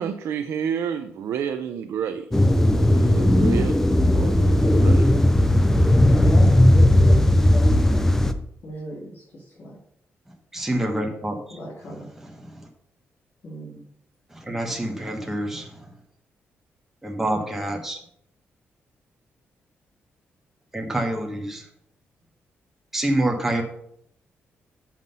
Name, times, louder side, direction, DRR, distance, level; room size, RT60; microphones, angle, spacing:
voice 1, 0.0-2.3 2.7-3.9 4.1-5.1, right 8 dB, 80° right, 7 dB, 0.5 m, -30 dB
sound 1, 2.3-8.3, left 1 dB, 10° left, 0.5 m, -17 dB
voice 2, 6.3-7.8 8.6-9.7 11.5-12.1 13.4-13.8, equal, 45° left, -7 dB, 2.4 m, -36 dB
voice 3, 10.5-11.6 11.9-12.7 14.3-15.9 17.0-18.0 20.7-21.6 22.9-23.6, right 1 dB, 10° right, 1 dB, 1.2 m, -27 dB
7.4 x 5.8 x 5.4 m, 0.69 s
wide cardioid pair, 150°, 5 cm